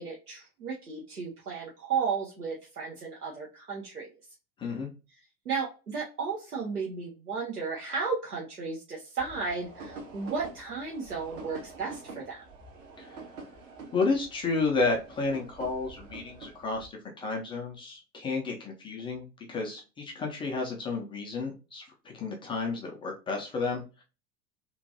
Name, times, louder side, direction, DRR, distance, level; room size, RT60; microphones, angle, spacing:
voice 1, 0.0-4.1 5.5-12.4, right 5 dB, 90° right, -3 dB, 0.7 m, -34 dB
voice 2, 4.6-4.9 13.0-13.2 13.9-23.8, left 3 dB, 15° left, 0 dB, 0.3 m, -31 dB
sound 1, 9.2-16.9, right 3 dB, 60° right, 1.1 m, -46 dB
3.0 x 2.5 x 2.6 m, 0.32 s
figure-of-eight pair, 80°, 44 cm